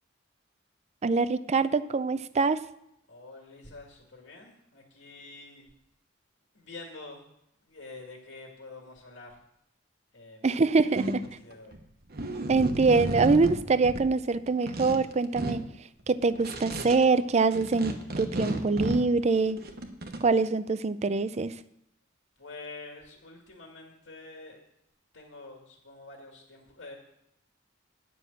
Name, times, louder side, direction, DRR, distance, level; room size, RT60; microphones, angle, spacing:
voice 1, 1.0-2.6 10.4-11.3 12.5-15.7 16.1-19.6 20.2-21.6, right 4 dB, 35° right, 15 dB, 0.4 m, -24 dB
voice 2, 3.1-5.7 6.5-7.3 7.6-9.4 10.1-10.6 10.9-11.1 11.4-11.8 22.4-24.6 25.1-27.0, left 3 dB, 75° left, 1 dB, 2.0 m, -47 dB
sound 1, 10.9-11.8 12.1-14.1 14.3-15.6 16.0-17.0 17.5-20.2, right 1 dB, 55° right, 1.1 m, -33 dB
10.0 x 6.2 x 8.1 m, 0.77 s
head